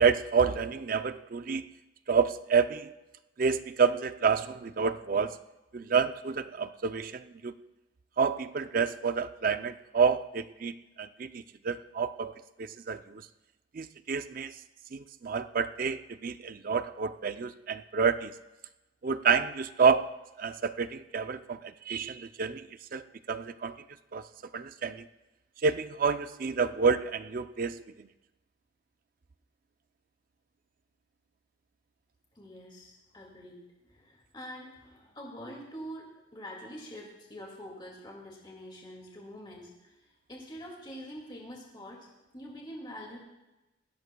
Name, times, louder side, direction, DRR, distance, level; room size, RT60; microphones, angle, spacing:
voice 1, 0.0-1.6 2.1-2.9 3.4-5.4 5.7-7.5 8.2-12.3 12.6-13.3 13.7-14.6 14.9-18.3 19.0-20.1 20.4-23.8 24.1-24.2 24.5-25.1 25.6-28.1, right 5 dB, 45° right, 12 dB, 0.4 m, -29 dB
voice 2, 32.4-33.6 33.9-39.9 40.3-43.2, equal, 25° left, -1 dB, 2.1 m, -45 dB
20.0 x 16.0 x 2.3 m, 1.0 s
head